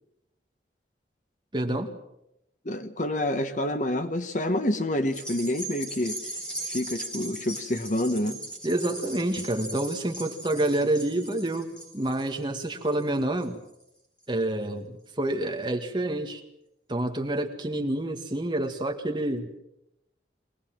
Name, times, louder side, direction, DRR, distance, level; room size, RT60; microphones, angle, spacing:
voice 1, 1.5-1.9 8.6-13.6 14.3-16.4 16.9-19.6, right 1 dB, 25° right, 5 dB, 1.8 m, -28 dB
voice 2, 2.6-6.2 6.7-8.4, left 1 dB, 45° left, 9 dB, 1.3 m, -28 dB
sound 1, 5.1-13.7 14.2-14.3, right 1 dB, 5° left, 4.5 m, -39 dB
23.5 x 18.5 x 7.6 m, 0.85 s
head